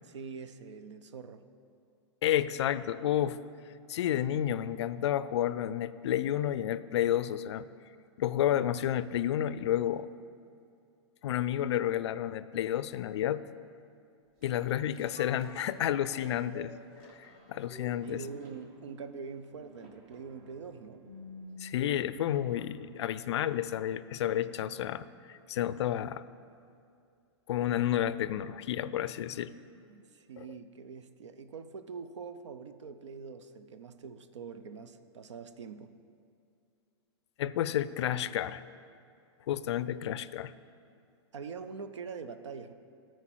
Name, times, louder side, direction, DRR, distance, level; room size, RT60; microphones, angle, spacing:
voice 1, 0.0-1.5 17.5-17.6 18.0-21.0 29.9-35.9 41.3-42.7, right 5 dB, 85° right, 10 dB, 0.6 m, -44 dB
voice 2, 2.2-3.4 3.9-7.7 8.2-10.1 11.2-13.4 14.4-16.7 17.2-18.2 21.6-26.2 27.5-29.5 30.4-30.5 37.4-38.6 39.5-40.5, left 11 dB, 70° left, 15 dB, 0.4 m, -31 dB
sound 1, 14.4-23.0 23.4-23.5, equal, 40° right, 1.3 m, -52 dB
13.0 x 4.5 x 4.6 m, 2.5 s
hypercardioid pair, 120°, 15 cm